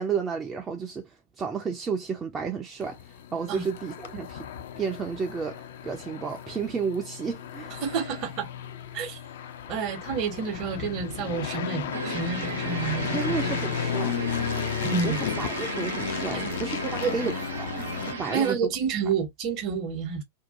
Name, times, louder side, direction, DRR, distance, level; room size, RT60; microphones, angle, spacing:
voice 1, 0.0-4.5 4.8-7.7 13.0-14.2 14.9-17.7 18.2-18.7, right 5 dB, 20° right, 0.4 m, -32 dB
sound 1, 2.8-18.1, left 9 dB, 60° left, 0.4 m, -34 dB
voice 2, 7.8-8.5 8.9-9.2 9.7-13.2 13.4-13.6 14.8-15.2 16.3-16.5 17.0-17.1 18.3-20.2, right 6 dB, 40° right, 0.8 m, -29 dB
sound 2, 11.9-18.5, right 3 dB, 75° right, 0.9 m, -35 dB
2.7 x 2.1 x 2.7 m
figure-of-eight pair, 90°, 0 cm